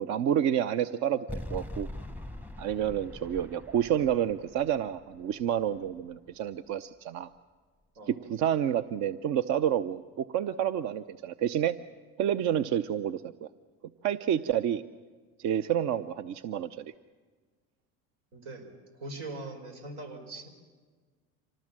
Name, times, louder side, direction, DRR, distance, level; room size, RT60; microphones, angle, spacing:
voice 1, 0.0-1.9 2.6-7.3 8.1-11.8 12.2-13.5 14.0-14.8 15.4-16.8, right 10 dB, 60° right, 13 dB, 0.7 m, -29 dB
sound 1, 1.3-6.5, left 1 dB, 5° right, 0.9 m, -43 dB
voice 2, 18.3-20.5, right 2 dB, 85° right, 5 dB, 4.9 m, -42 dB
25.5 x 19.0 x 7.5 m, 1.5 s
supercardioid pair, 105°, 33 cm